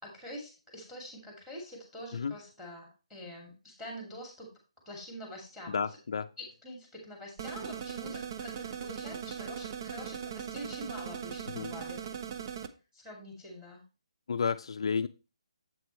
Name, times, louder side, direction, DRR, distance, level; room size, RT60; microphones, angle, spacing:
voice 1, 0.0-4.6 4.9-6.0 6.4-12.1 12.9-13.8, left 1 dB, 5° right, 1 dB, 2.5 m, -45 dB
voice 2, 5.7-6.3 11.5-11.7 14.3-15.1, left 6 dB, 55° left, 8 dB, 0.5 m, -31 dB
sound 1, 7.4-12.7, right 8 dB, 35° right, 0.7 m, -39 dB
7.9 x 7.8 x 3.1 m, 0.30 s
hypercardioid pair, 165°, 3 cm